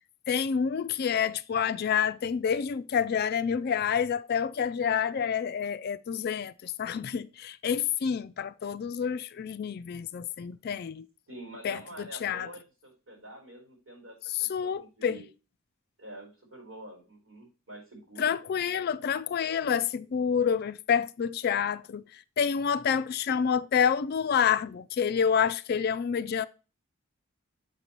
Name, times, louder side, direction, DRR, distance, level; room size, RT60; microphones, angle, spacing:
voice 1, 0.3-11.1 11.6-12.5 14.3-15.2 18.2-26.5, left 7 dB, 50° left, 0.3 m, -28 dB
voice 2, 11.3-15.3 16.0-18.7, right 1 dB, 80° right, 4.2 m, -47 dB
7.3 x 5.5 x 2.9 m
head